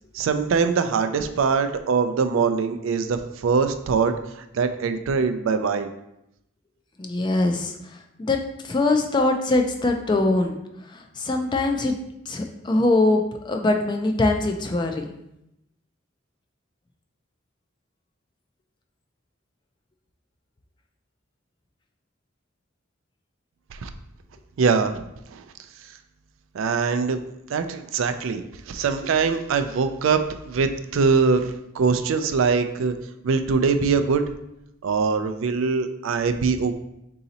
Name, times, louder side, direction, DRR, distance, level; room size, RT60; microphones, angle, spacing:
voice 1, 0.1-4.1 4.5-5.9 23.8-23.9 24.6-25.0 25.3-25.4 26.5-27.2 27.5-28.4 28.7-32.9 33.2-34.2 34.8-36.8, right 5 dB, 70° right, 8 dB, 0.3 m, -22 dB
voice 2, 7.0-10.6 10.8-12.0 12.3-15.0, left 2 dB, 20° left, 4 dB, 0.3 m, -23 dB
3.9 x 2.8 x 3.9 m, 0.84 s
head